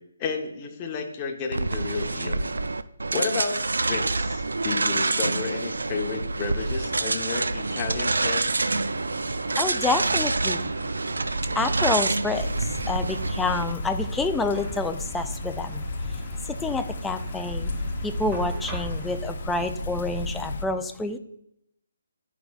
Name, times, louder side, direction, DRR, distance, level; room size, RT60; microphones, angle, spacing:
voice 1, 0.2-2.4 3.1-8.4, left 5 dB, 25° left, 2 dB, 0.9 m, -31 dB
sound 1, 1.5-13.7, right 3 dB, 85° right, 0.3 m, -27 dB
sound 2, 6.6-19.2, right 1 dB, 15° right, 0.8 m, -42 dB
voice 2, 9.6-10.7 11.6-15.8 16.5-17.7 18.0-21.2, left 3 dB, 5° left, 7 dB, 0.3 m, -28 dB
sound 3, 12.3-20.6, left 2 dB, 50° left, 0.7 m, -33 dB
10.5 x 4.6 x 2.4 m, 0.80 s
hypercardioid pair, 155°, 0 cm